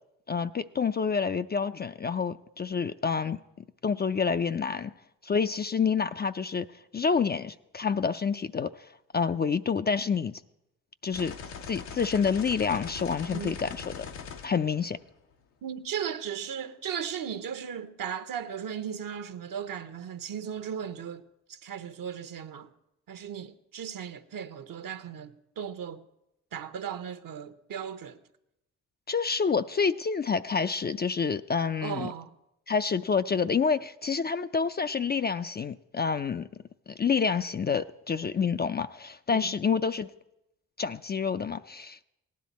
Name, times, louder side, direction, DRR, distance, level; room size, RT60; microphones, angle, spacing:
voice 1, 0.3-3.4 3.8-4.9 5.2-6.7 6.9-8.9 9.1-10.4 11.0-11.3 11.6-14.0 14.4-15.0 29.1-32.1 32.7-36.5 36.9-40.1 40.8-42.0, left 5 dB, 25° left, 0.4 m, -28 dB
sound 1, 11.1-15.3, left 6 dB, 90° left, 1.1 m, -42 dB
voice 2, 15.6-22.7 23.1-26.0 26.5-28.2 31.8-32.3 39.3-39.5, right 8 dB, 60° right, 1.0 m, -36 dB
18.0 x 10.5 x 4.1 m
supercardioid pair, 50°, 38 cm